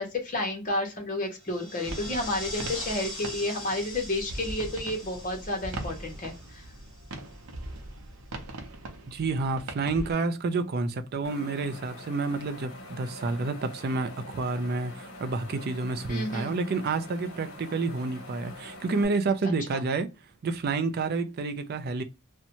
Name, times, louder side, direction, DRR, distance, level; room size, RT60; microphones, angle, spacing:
voice 1, 0.0-6.6 16.1-16.5 19.7-19.8, left 1 dB, 35° left, 1.0 m, -31 dB
sound 1, 1.4-7.2, left 1 dB, 20° left, 1.2 m, -41 dB
sound 2, 1.8-10.1, right 1 dB, 90° right, 0.7 m, -41 dB
voice 2, 9.1-20.1 20.4-22.0, right 3 dB, 45° right, 0.4 m, -29 dB
Wind, 11.2-19.1, left 1 dB, 65° left, 0.9 m, -45 dB
2.6 x 2.2 x 2.8 m
head